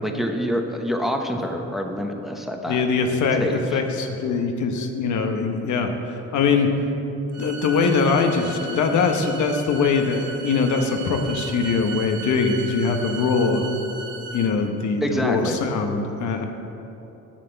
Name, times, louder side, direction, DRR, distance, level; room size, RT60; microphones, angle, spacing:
voice 1, 0.0-2.8 3.4-3.8 15.0-15.6, equal, ahead, 3 dB, 0.9 m, -26 dB
voice 2, 2.7-6.7 7.3-13.7 14.3-16.4, left 4 dB, 75° left, 4 dB, 1.0 m, -22 dB
sound 1, 7.3-14.5, right 3 dB, 55° right, 1.9 m, -36 dB
7.4 x 6.6 x 7.7 m, 2.9 s
cardioid pair, 90°, 30 cm